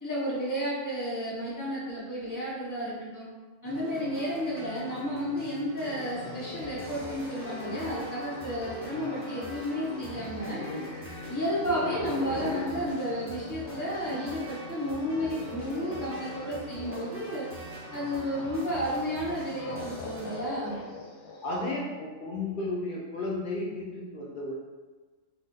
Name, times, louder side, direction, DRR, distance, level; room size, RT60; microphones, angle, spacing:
voice 1, 0.0-3.3 3.6-10.6 11.3-17.5 17.9-20.8, equal, 15° left, -7 dB, 0.8 m, -32 dB
sound 1, 3.6-20.4, equal, 20° right, 0.4 m, -43 dB
sound 2, 5.7-14.5 14.8-21.6, left 2 dB, 75° left, 0.9 m, -41 dB
voice 2, 21.4-24.5, left 2 dB, 55° left, -3 dB, 0.6 m, -33 dB
2.5 x 2.2 x 3.8 m, 1.3 s
omnidirectional pair, 1.4 m